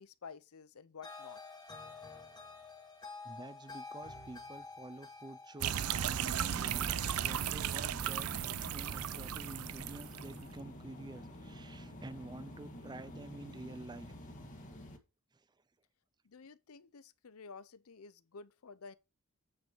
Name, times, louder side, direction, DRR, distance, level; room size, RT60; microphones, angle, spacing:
voice 1, 0.0-1.4 16.2-19.0, left 5 dB, 85° left, 0.7 m, -52 dB
sound 1, 1.0-8.2, left 3 dB, 20° left, 2.1 m, -50 dB
voice 2, 3.2-14.1 15.3-15.4, right 2 dB, 20° right, 0.5 m, -49 dB
sound 2, 5.6-10.4, right 9 dB, 85° right, 0.5 m, -36 dB
sound 3, 6.3-15.0, left 1 dB, 40° left, 1.8 m, -49 dB
9.3 x 5.4 x 4.6 m
head